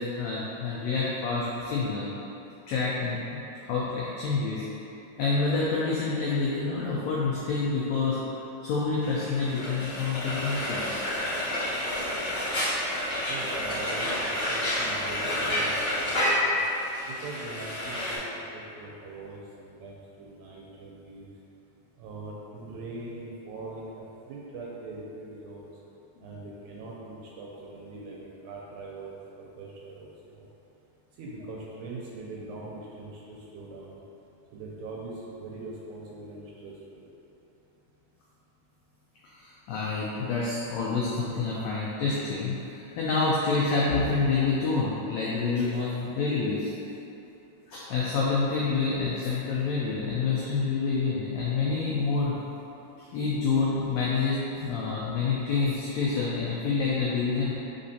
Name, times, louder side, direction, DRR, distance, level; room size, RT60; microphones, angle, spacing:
voice 1, 0.0-2.2 2.7-4.6 5.2-8.2 8.6-11.1 39.2-46.7 47.7-52.4 53.0-57.5, left 4 dB, 85° left, -6 dB, 1.5 m, -28 dB
Frying (food), 9.0-18.2, left 1 dB, 35° left, 1.2 m, -29 dB
voice 2, 13.3-16.6 17.1-21.3 22.0-25.7 26.2-30.5 31.2-34.0 34.5-37.0, right 2 dB, 80° right, -4 dB, 1.9 m, -42 dB
4.2 x 3.8 x 2.7 m, 2.9 s
omnidirectional pair, 3.6 m